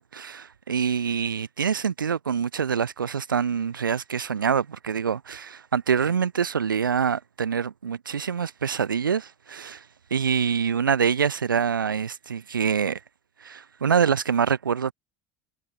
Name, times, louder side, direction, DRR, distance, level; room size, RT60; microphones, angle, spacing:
voice 1, 0.0-9.8 10.1-13.0 13.4-14.9, right 7 dB, 90° right, 2.7 m, -25 dB
hypercardioid pair, 80°, 11 cm